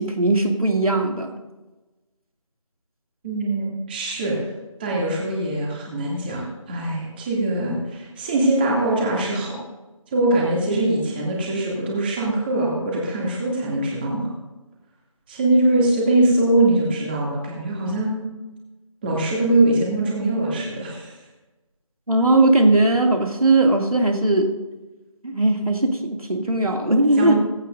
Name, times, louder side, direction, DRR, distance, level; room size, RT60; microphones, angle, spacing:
voice 1, 0.0-1.3 22.1-24.5 25.2-27.3, right 2 dB, 80° right, 2 dB, 2.6 m, -19 dB
voice 2, 3.2-4.4 4.8-9.6 10.1-14.3 15.3-18.2 19.0-21.2 27.2-27.3, right 2 dB, 15° right, -3 dB, 2.6 m, -22 dB
18.0 x 16.0 x 2.7 m, 1.1 s
figure-of-eight pair, 160°, 18 cm